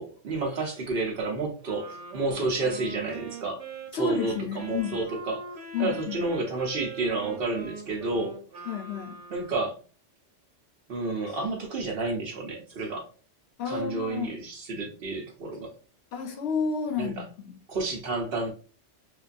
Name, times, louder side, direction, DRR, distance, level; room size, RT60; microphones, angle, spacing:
voice 1, 0.0-3.6 3.9-5.5 5.8-8.4 9.3-9.7 10.9-13.1 13.7-15.7 17.0-17.1 17.7-18.5, right 3 dB, 60° right, 0.9 m, -30 dB
Wind instrument woodwind instrument, 1.6-9.8, right 3 dB, 80° right, 1.1 m, -42 dB
voice 2, 3.9-5.0 5.7-6.2 8.7-9.2 13.6-14.4 16.1-17.5, left 5 dB, 65° left, 0.8 m, -31 dB
3.3 x 2.3 x 2.4 m
omnidirectional pair, 1.2 m